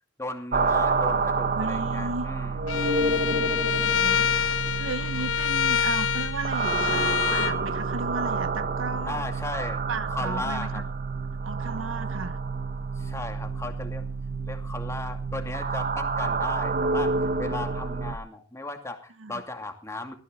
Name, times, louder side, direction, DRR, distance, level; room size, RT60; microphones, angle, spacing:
voice 1, 0.2-2.7 4.1-4.8 5.1-5.3 9.0-10.8 13.0-14.1 14.5-17.1 17.4-20.1, left 2 dB, 15° left, 2.5 m, -36 dB
sound 1, 0.5-18.1, right 3 dB, 45° right, 1.3 m, -29 dB
voice 2, 1.2-2.3 3.6-4.3 4.7-10.8 11.4-12.4 19.2-19.4, right 3 dB, 85° right, 1.2 m, -35 dB
Bowed string instrument, 2.7-7.6, left 8 dB, 80° left, 1.5 m, -26 dB
19.5 x 14.0 x 3.8 m
head